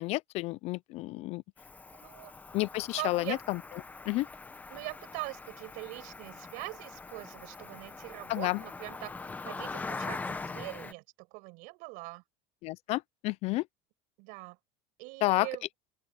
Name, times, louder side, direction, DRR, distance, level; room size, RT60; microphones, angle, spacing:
voice 1, 0.0-1.4 2.5-3.6 4.1-4.3 8.3-8.6 12.6-13.6 15.2-15.5, left 19 dB, 40° left, 0.4 m, -30 dB
Cricket, 1.6-10.9, left 3 dB, 10° left, 0.9 m, -42 dB
voice 2, 1.9-2.4 3.0-3.4 4.7-12.2 14.2-14.6 15.0-15.8, right 27 dB, 60° right, 6.5 m, -42 dB
open air
cardioid pair, 165°, 16 cm